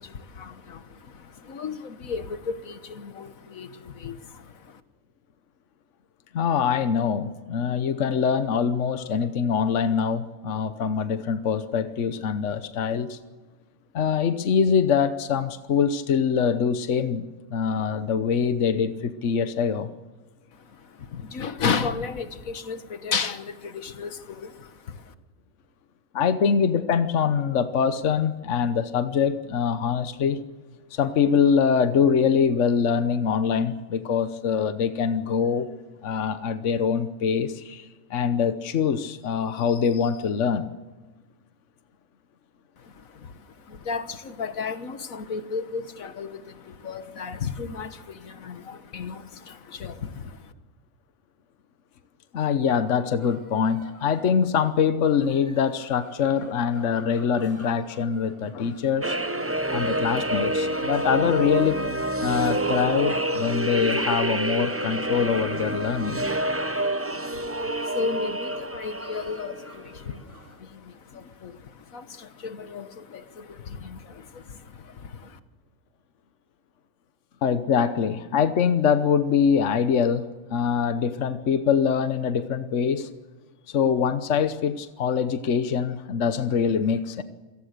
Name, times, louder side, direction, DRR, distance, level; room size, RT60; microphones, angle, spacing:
voice 1, 0.0-4.8 20.5-25.1 42.8-50.5 67.0-75.4, left 5 dB, 80° left, 10 dB, 1.7 m, -34 dB
voice 2, 6.3-13.2 13.9-19.9 26.1-30.4 30.9-35.7 36.0-40.7 52.3-59.2 59.7-61.8 62.2-66.2 77.4-83.1 83.7-87.2, left 7 dB, 65° left, 11 dB, 1.3 m, -24 dB
sound 1, 52.7-70.6, left 1 dB, 10° left, 3.7 m, -50 dB
sound 2, 59.0-69.8, right 1 dB, 15° right, 0.5 m, -27 dB
27.5 x 18.0 x 6.7 m, 1.3 s
omnidirectional pair, 1.4 m